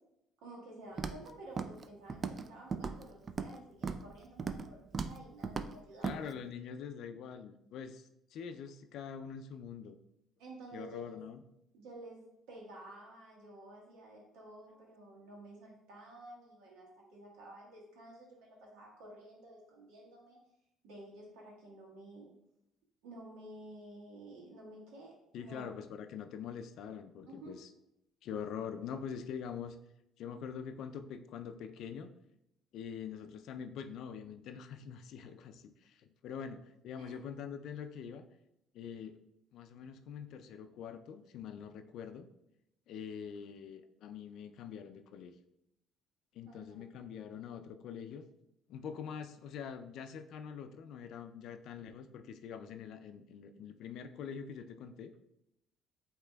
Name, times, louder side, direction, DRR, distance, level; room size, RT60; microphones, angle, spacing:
voice 1, 0.4-6.2 10.4-11.2 11.7-20.4 20.8-22.3 23.0-25.7 27.3-27.6 36.9-37.2 46.4-46.8, right 1 dB, 85° right, -3 dB, 1.4 m, -52 dB
Walk footsteps, 1.0-1.3 1.6-1.8 2.1-2.5 2.7-3.5 3.8-4.1 4.4-4.7 4.9-5.2 5.4-5.7 6.0-6.2, right 5 dB, 40° right, 0.3 m, -37 dB
voice 2, 6.0-10.0 10.7-11.4 25.3-27.7 28.2-29.8 30.2-32.1 32.7-38.2 38.7-39.2 39.5-42.3 42.9-45.3 46.3-48.2 48.7-55.1, left 7 dB, 70° left, 9 dB, 0.4 m, -44 dB
7.8 x 2.9 x 2.3 m, 0.83 s
supercardioid pair, 85°, 0 cm